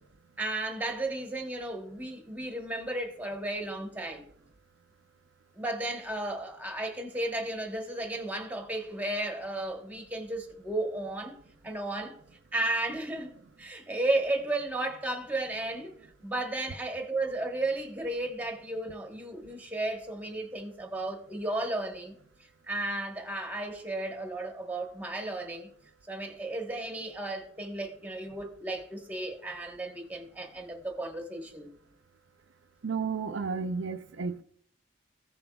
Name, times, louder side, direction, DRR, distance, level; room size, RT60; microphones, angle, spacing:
voice 1, 0.4-4.3 5.5-11.4 11.6-12.2 12.5-13.3 13.6-16.0 16.2-22.2 22.7-25.7 26.1-31.7, right 2 dB, 10° right, 1.1 m, -34 dB
voice 2, 32.8-34.4, right 5 dB, 75° right, 0.5 m, -32 dB
15.5 x 7.0 x 2.3 m
head